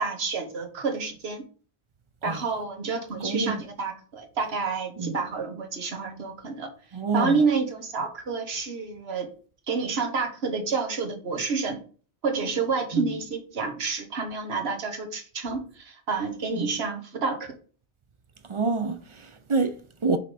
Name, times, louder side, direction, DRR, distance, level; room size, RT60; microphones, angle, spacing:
voice 1, 0.0-1.4 2.2-6.7 7.1-9.3 9.7-11.8 12.2-17.5, right 4 dB, 65° right, 1.4 m, -29 dB
voice 2, 3.2-3.6 5.0-5.2 6.9-7.4 12.9-13.1 16.6-16.7 18.5-20.2, right 3 dB, 45° right, 0.4 m, -27 dB
5.6 x 3.7 x 4.8 m
omnidirectional pair, 1.2 m